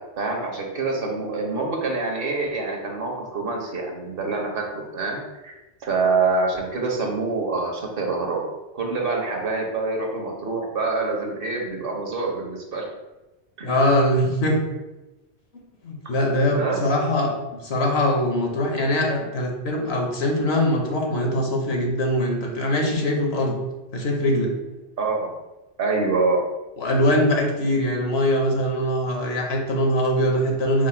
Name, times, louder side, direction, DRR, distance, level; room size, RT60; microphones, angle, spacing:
voice 1, 0.2-5.5 5.8-8.4 8.7-12.8 13.6-13.7 16.4-16.8 25.0-25.3 25.8-26.4, right 3 dB, 60° right, 0 dB, 0.9 m, -26 dB
voice 2, 13.6-14.6 15.8-17.3 17.6-23.6 23.9-24.5 26.8-30.9, left 1 dB, 70° left, 1 dB, 1.0 m, -22 dB
4.9 x 2.1 x 4.3 m, 1.0 s
omnidirectional pair, 1.1 m